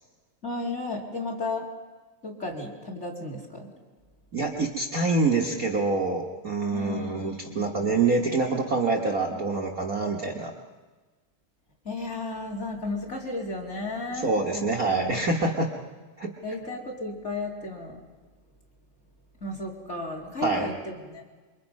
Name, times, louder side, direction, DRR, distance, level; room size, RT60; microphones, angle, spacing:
voice 1, 0.4-1.7 2.2-3.7 6.7-7.2 7.5-7.6 11.8-15.6 16.4-18.0 19.4-21.2, left 2 dB, 20° left, 2 dB, 2.5 m, -34 dB
voice 2, 4.3-10.5 14.1-15.7 16.2-16.3 20.4-20.7, right 3 dB, 65° right, -1 dB, 0.8 m, -26 dB
27.0 x 23.5 x 5.4 m, 1.3 s
omnidirectional pair, 3.9 m